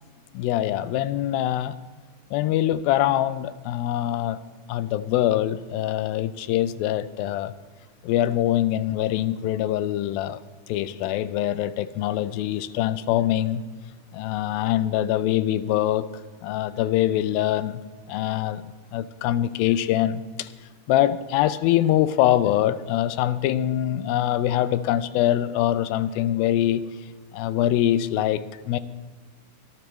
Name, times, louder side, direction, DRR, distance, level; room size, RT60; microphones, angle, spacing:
voice 1, 0.3-1.8 2.3-4.4 4.7-7.5 8.0-10.4 10.7-13.6 14.1-16.1 16.4-17.8 18.1-18.6 18.9-20.5 20.9-26.8 27.3-28.8, left 12 dB, 85° left, 2.4 m, -24 dB
23.5 x 12.0 x 3.1 m
omnidirectional pair, 4.1 m